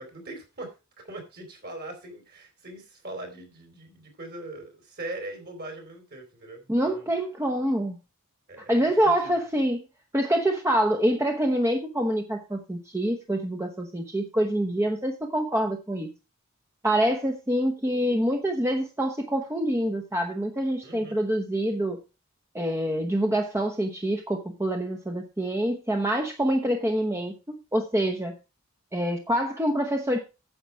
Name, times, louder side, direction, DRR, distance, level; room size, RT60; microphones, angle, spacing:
voice 1, 0.0-7.1 8.5-9.5 20.8-21.2, right 2 dB, 45° right, 4 dB, 4.1 m, -41 dB
voice 2, 6.7-8.0 8.7-9.8 10.1-16.1 16.8-22.0 22.5-28.3 28.9-30.2, right 1 dB, 10° right, 4 dB, 0.9 m, -26 dB
9.9 x 7.5 x 4.6 m, 0.29 s
head